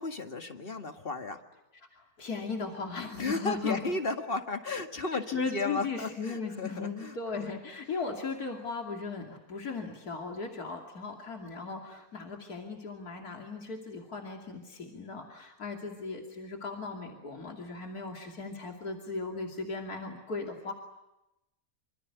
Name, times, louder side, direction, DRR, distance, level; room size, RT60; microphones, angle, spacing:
voice 1, 0.0-1.4 3.1-7.5, left 3 dB, 40° left, 6 dB, 2.1 m, -34 dB
voice 2, 1.9-3.8 5.3-20.7, left 4 dB, 85° left, 2 dB, 3.3 m, -37 dB
26.5 x 26.5 x 8.2 m, 0.93 s
omnidirectional pair, 1.6 m